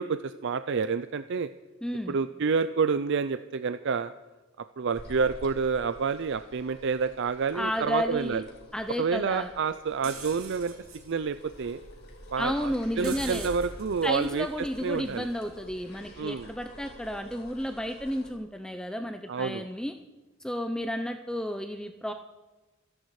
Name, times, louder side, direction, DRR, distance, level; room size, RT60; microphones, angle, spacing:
voice 1, 0.0-1.5 2.1-4.1 4.8-8.4 9.0-10.7 11.1-11.8 12.3-14.5 14.8-15.3 16.2-16.5 19.3-19.6, right 5 dB, 60° right, 12 dB, 0.5 m, -28 dB
voice 2, 1.8-2.2 7.5-8.4 8.7-9.5 12.4-13.5 14.0-19.9 20.4-22.1, equal, 5° left, 7 dB, 0.6 m, -32 dB
sound 1, 4.9-18.3, left 1 dB, 50° left, 4.9 m, -50 dB
sound 2, 10.0-15.8, right 3 dB, 90° right, 2.6 m, -44 dB
26.5 x 11.0 x 4.8 m, 1.1 s
head